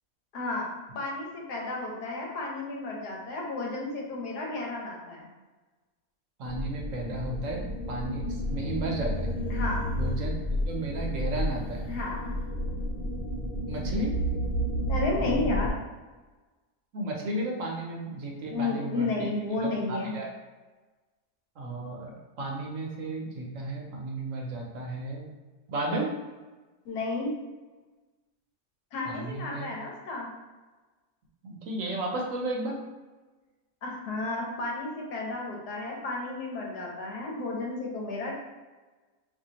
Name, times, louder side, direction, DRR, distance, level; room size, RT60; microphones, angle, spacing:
voice 1, 0.3-0.7 0.9-5.3 9.5-9.9 11.9-12.3 14.9-15.7 18.5-20.2 26.8-27.3 28.9-30.3 33.8-38.3, left 2 dB, 90° left, -2 dB, 1.4 m, -32 dB
sound 1, 6.4-15.7, equal, 70° left, 1.0 m, -31 dB
voice 2, 6.4-7.6 7.9-9.3 10.0-11.9 13.7-14.2 16.9-19.3 19.6-20.3 21.6-25.3 25.7-26.1 29.0-29.7 31.4-32.8, right 2 dB, 65° right, -1 dB, 0.9 m, -33 dB
3.6 x 2.6 x 2.8 m, 1.3 s
omnidirectional pair, 1.6 m